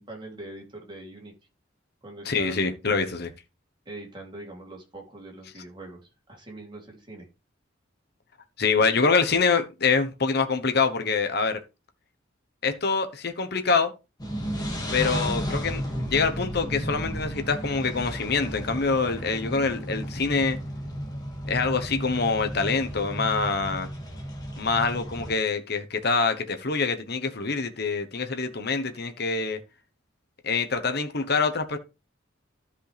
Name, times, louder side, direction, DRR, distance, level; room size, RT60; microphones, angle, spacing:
voice 1, 0.0-1.3 2.0-2.8 3.8-7.3, right 2 dB, 25° right, 3.0 m, -43 dB
voice 2, 2.2-3.3 8.6-11.6 12.6-13.9 14.9-20.6 21.5-23.9 24.6-29.6 30.4-31.8, left 4 dB, 55° left, 1.1 m, -25 dB
sound 1, 14.2-25.3, equal, 20° left, 2.1 m, -33 dB
13.0 x 5.4 x 3.4 m
head